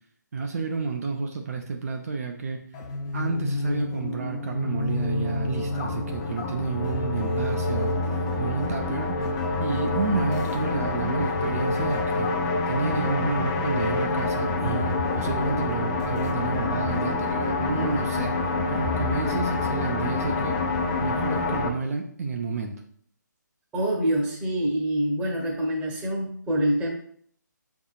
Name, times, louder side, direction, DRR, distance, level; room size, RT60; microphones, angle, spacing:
voice 1, 0.3-2.6 3.1-9.2 9.6-12.3 12.7-18.3 18.7-20.6 21.0-22.7, right 4 dB, 50° right, 3 dB, 0.6 m, -30 dB
sound 1, 2.7-21.7, left 3 dB, 20° left, 0.4 m, -27 dB
voice 2, 23.7-26.9, right 1 dB, 10° right, -2 dB, 0.9 m, -25 dB
6.1 x 3.6 x 2.4 m, 0.62 s
figure-of-eight pair, 150°, 10 cm